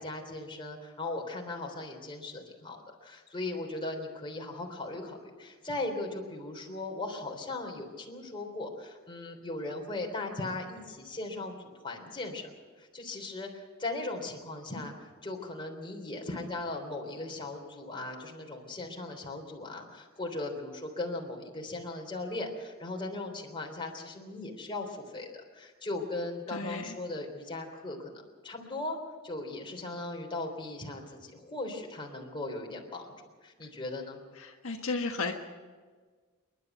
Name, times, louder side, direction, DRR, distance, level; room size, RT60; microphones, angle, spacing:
voice 1, 0.0-11.6 11.8-12.5 12.8-13.5 13.8-14.9 15.2-29.0 29.2-33.1 33.4-34.2, left 2 dB, 25° left, 1 dB, 3.5 m, -38 dB
voice 2, 26.5-26.9 34.4-35.3, left 3 dB, 70° left, 2 dB, 1.5 m, -33 dB
28.0 x 11.5 x 8.2 m, 1.5 s
head